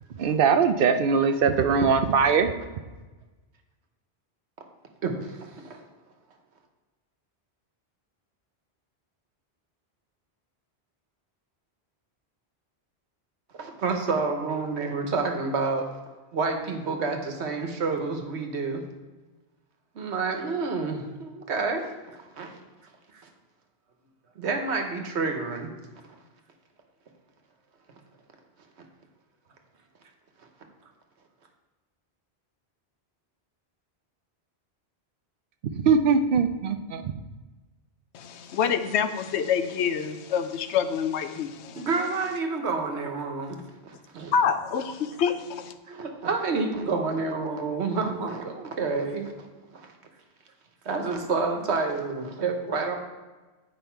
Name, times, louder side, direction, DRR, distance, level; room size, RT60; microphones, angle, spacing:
voice 1, 0.2-2.6 35.8-37.1, right 5 dB, 60° right, 10 dB, 0.7 m, -21 dB
voice 2, 5.0-5.8 13.6-15.9 16.3-18.8 19.9-21.8 22.2-22.5 24.4-25.7 41.8-44.3 45.9-49.5 49.7-49.9 50.8-53.0, right 4 dB, 80° right, 4 dB, 1.3 m, -29 dB
voice 3, 38.1-41.9 44.3-45.7, left 7 dB, 90° left, 10 dB, 0.9 m, -27 dB
8.9 x 5.3 x 4.5 m, 1.2 s
omnidirectional pair, 1.1 m